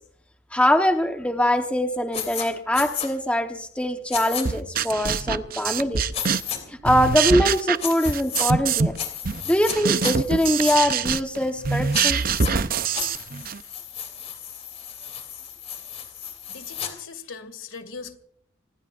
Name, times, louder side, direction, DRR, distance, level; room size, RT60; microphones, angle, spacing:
voice 1, 0.5-6.0 6.7-8.9 9.5-12.2, equal, 5° left, 5 dB, 1.1 m, -23 dB
sound 1, 2.1-2.5 2.7-3.1 4.1-4.4 6.1-6.6 7.8-8.5 9.0-9.8 10.0-10.8 11.9-12.5 12.9-16.9, left 8 dB, 35° left, 3.0 m, -33 dB
sound 2, 4.5-6.6 6.8-9.0 9.3-13.6, right 6 dB, 45° right, 0.6 m, -24 dB
voice 2, 16.5-18.2, left 5 dB, 90° left, 10 dB, 2.3 m, -39 dB
25.0 x 20.0 x 2.5 m, 0.62 s
head